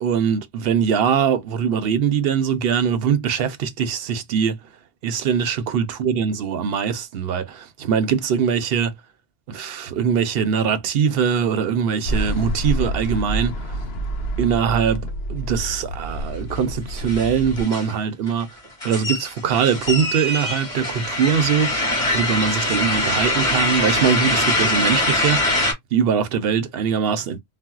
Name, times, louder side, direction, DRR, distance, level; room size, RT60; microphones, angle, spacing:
voice 1, 0.0-4.6 5.0-8.9 9.5-13.7 14.4-15.0 15.3-18.5 18.8-25.5 25.9-27.4, right 7 dB, 65° right, 0.8 m, -22 dB
sound 1, 12.1-17.6, right 1 dB, 65° left, 0.9 m, -28 dB
sound 2, 16.6-16.7 16.9-17.9 18.3-25.7, left 1 dB, 30° left, 1.9 m, -23 dB
4.1 x 2.0 x 2.3 m
omnidirectional pair, 1.2 m